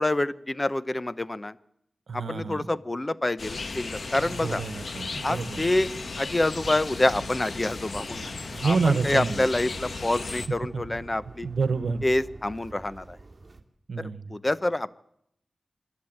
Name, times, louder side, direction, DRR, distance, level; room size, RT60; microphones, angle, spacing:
voice 1, 0.0-1.5 2.3-4.6 5.2-5.9 6.2-8.3 8.6-11.5 12.0-13.2 14.3-14.9, left 1 dB, 25° left, 16 dB, 0.8 m, -27 dB
voice 2, 2.1-2.7 4.2-5.7 8.5-9.5 10.7-11.0 11.4-12.1 13.9-14.4, right 4 dB, 85° right, 12 dB, 1.2 m, -28 dB
sound 1, 3.4-10.5, left 3 dB, 70° left, 1.4 m, -35 dB
sound 2, 6.5-13.6, right 3 dB, 40° right, 2.5 m, -47 dB
26.0 x 11.5 x 8.8 m, 0.76 s
wide cardioid pair, 60°, 0 cm